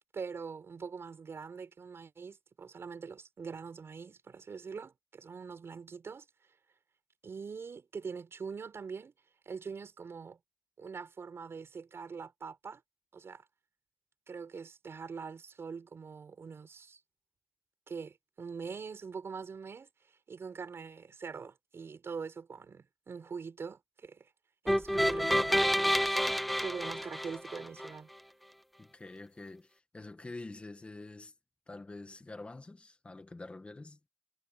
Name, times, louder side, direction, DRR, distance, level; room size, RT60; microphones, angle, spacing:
voice 1, 0.1-6.3 7.2-9.1 9.5-10.4 10.8-12.8 13.1-13.4 14.3-17.0 17.9-24.3 24.6-26.2 26.6-28.1, right 5 dB, 50° right, 7.0 m, -43 dB
sound 1, 24.7-27.9, equal, ahead, 0.6 m, -29 dB
voice 2, 28.8-31.3 31.7-34.0, left 2 dB, 20° left, 1.9 m, -46 dB
wide cardioid pair, 160°, 5 cm